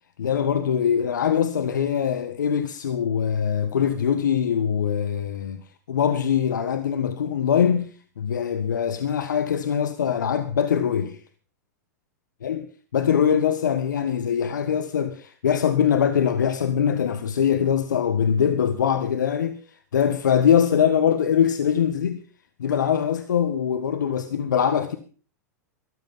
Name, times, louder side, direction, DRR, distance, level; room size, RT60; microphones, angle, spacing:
voice 1, 0.2-5.6 5.9-7.9 8.2-11.2 12.4-12.6 12.9-19.6 19.9-22.2 22.6-25.0, left 8 dB, 85° left, 1.3 m, -22 dB
14.0 x 12.0 x 5.5 m
hypercardioid pair, 110°, 10 cm